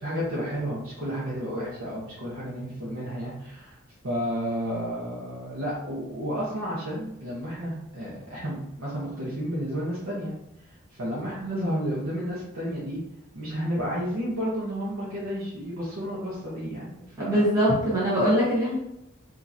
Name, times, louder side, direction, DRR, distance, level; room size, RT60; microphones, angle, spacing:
voice 1, 0.0-3.8 4.0-10.3 10.9-13.0 13.3-17.5, equal, 90° right, -8 dB, 1.1 m, -31 dB
voice 2, 17.2-18.8, equal, 15° right, -8 dB, 1.2 m, -22 dB
4.9 x 2.9 x 2.7 m, 0.83 s
head